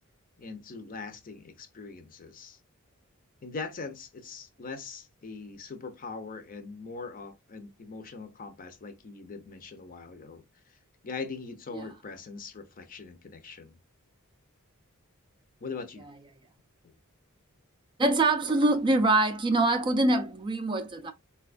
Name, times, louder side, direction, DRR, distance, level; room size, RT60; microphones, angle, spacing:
voice 1, 0.4-2.6 3.4-10.8 11.0-13.8 15.6-16.1, left 4 dB, 40° left, 0.6 m, -41 dB
voice 2, 18.0-21.1, right 2 dB, 20° right, 0.3 m, -24 dB
4.1 x 2.2 x 2.4 m
head